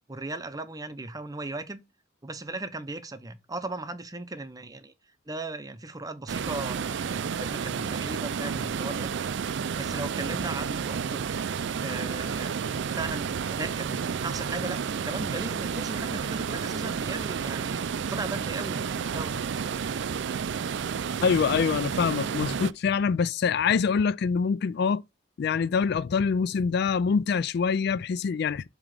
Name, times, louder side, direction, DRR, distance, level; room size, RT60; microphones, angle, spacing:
voice 1, 0.1-1.8 2.2-4.9 5.3-9.1 9.8-11.2 11.8-17.8 18.1-19.4, right 2 dB, 20° right, 0.7 m, -37 dB
sound 1, 6.3-22.7, right 6 dB, 65° right, 0.4 m, -31 dB
voice 2, 21.2-25.0 25.4-28.7, left 6 dB, 55° left, 0.3 m, -25 dB
7.4 x 3.0 x 5.0 m
head